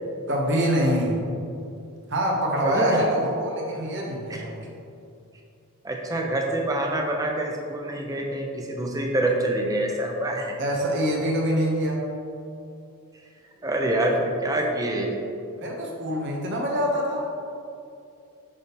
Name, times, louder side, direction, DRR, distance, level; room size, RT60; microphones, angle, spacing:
voice 1, 0.3-1.2 2.1-4.7 10.6-12.0 15.6-17.5, equal, 55° right, -1 dB, 0.9 m, -25 dB
voice 2, 2.6-3.0 4.3-4.4 5.8-10.6 13.6-15.2, right 1 dB, 15° right, 1 dB, 0.5 m, -26 dB
6.2 x 6.1 x 3.0 m, 2.5 s
head